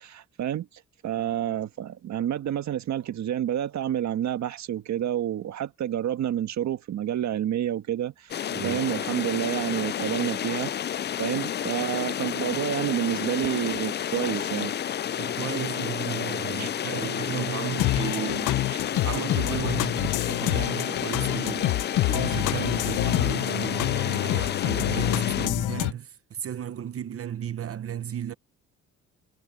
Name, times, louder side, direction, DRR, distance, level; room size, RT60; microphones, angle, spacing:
voice 1, 0.0-10.9 11.2-14.7 16.6-16.7, right 10 dB, 65° right, 1.7 m, -29 dB
sound 1, 8.3-25.5, left 9 dB, 35° left, 0.4 m, -31 dB
voice 2, 8.5-8.8 15.2-18.7 18.9-28.3, right 9 dB, 50° right, 1.0 m, -34 dB
sound 2, 17.8-25.9, left 16 dB, 85° left, 0.8 m, -27 dB
cardioid pair, 90°, 30 cm